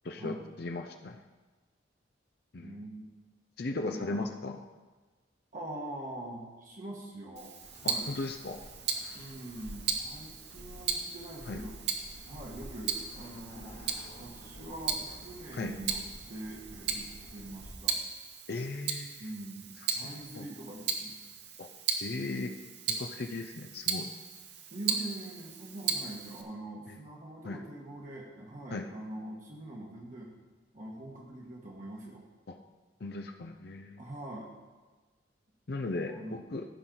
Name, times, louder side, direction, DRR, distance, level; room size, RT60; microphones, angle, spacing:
voice 1, 0.0-1.2 2.5-2.8 3.6-4.6 7.8-8.6 11.5-11.6 15.5-15.7 18.5-19.2 19.9-20.5 21.6-21.7 22.0-22.5 22.9-24.1 27.4-27.6 28.7-28.9 32.5-32.6 33.0-34.0 35.7-36.7, left 3 dB, 55° left, 4 dB, 0.6 m, -37 dB
voice 2, 2.6-3.0 3.9-4.3 5.5-7.5 7.8-8.1 9.1-11.8 12.3-13.9 14.2-18.0 19.1-21.2 24.7-30.3 30.7-32.2 34.0-34.5 36.0-36.6, right 1 dB, 45° right, -3 dB, 1.4 m, -43 dB
Tick-tock, 7.4-26.4, right 6 dB, 60° right, 0.9 m, -37 dB
Bird, 7.6-17.7, equal, 80° left, 2.9 m, -50 dB
15.0 x 6.1 x 3.9 m, 1.3 s
head